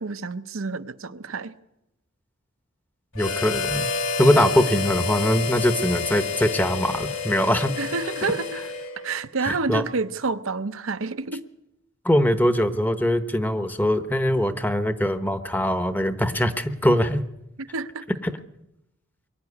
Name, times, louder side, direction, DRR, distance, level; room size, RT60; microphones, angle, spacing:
voice 1, 0.0-1.5 7.8-8.6 9.0-11.4 17.6-18.1, right 4 dB, 75° right, 0.8 m, -29 dB
Harmonica, 3.1-9.2, left 5 dB, 75° left, 3.2 m, -29 dB
voice 2, 3.1-3.9 4.2-7.7 9.4-9.8 12.0-17.2 18.2-18.3, equal, 10° left, 0.9 m, -22 dB
22.5 x 12.0 x 9.8 m
head